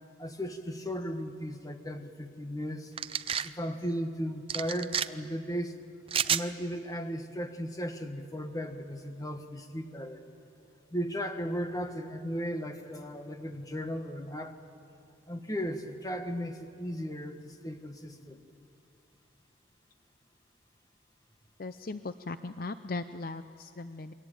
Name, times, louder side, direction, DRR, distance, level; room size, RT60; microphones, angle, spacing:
voice 1, 0.2-2.9 3.4-5.7 6.2-10.2 10.9-14.5 15.3-18.4, equal, 20° left, 7 dB, 1.4 m, -36 dB
sound 1, 3.0-3.5 4.5-5.1 6.1-6.5, right 8 dB, 30° right, 0.5 m, -29 dB
voice 2, 21.6-24.1, left 3 dB, 45° left, 11 dB, 0.6 m, -38 dB
28.5 x 22.0 x 9.1 m, 2.6 s
head